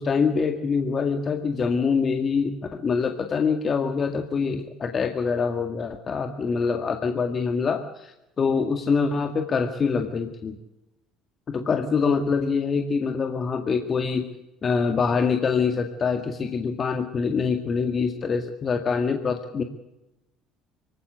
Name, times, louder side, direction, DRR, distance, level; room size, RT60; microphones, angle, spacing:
voice 1, 0.0-10.6 11.5-14.3 14.6-19.6, left 5 dB, 40° left, 6 dB, 2.0 m, -25 dB
25.0 x 16.0 x 8.1 m, 0.94 s
hypercardioid pair, 65°, 0 cm